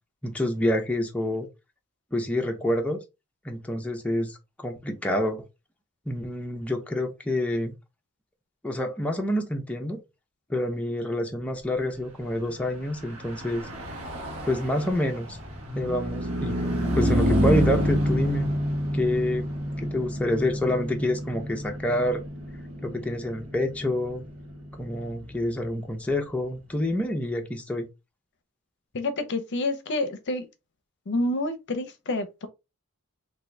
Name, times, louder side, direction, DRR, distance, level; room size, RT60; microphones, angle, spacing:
voice 1, 0.2-1.5 2.1-3.0 3.4-5.4 6.1-7.7 8.6-10.0 10.5-13.7 14.4-15.4 15.7-16.6 16.9-18.5 18.9-19.5 19.8-22.2 22.8-24.2 24.8-27.9, left 1 dB, 5° left, 0.5 m, -27 dB
Car passing by / Truck, 12.9-26.6, equal, 75° right, 1.2 m, -29 dB
voice 2, 28.9-30.5 31.1-32.5, left 2 dB, 55° left, 0.6 m, -28 dB
3.7 x 2.6 x 3.1 m
head